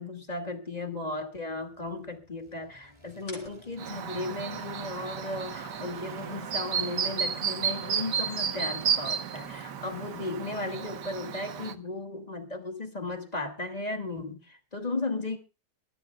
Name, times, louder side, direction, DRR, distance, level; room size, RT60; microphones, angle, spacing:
voice 1, 0.0-15.4, left 2 dB, 25° left, 6 dB, 2.3 m, -35 dB
Engine, 1.5-8.9, right 1 dB, 15° right, 2.8 m, -54 dB
sound 1, 3.2-10.2, left 2 dB, 50° left, 3.8 m, -57 dB
Chirp tweet, 3.8-11.7, right 7 dB, 75° right, 1.7 m, -32 dB
25.0 x 12.5 x 2.3 m, 0.31 s
omnidirectional pair, 1.8 m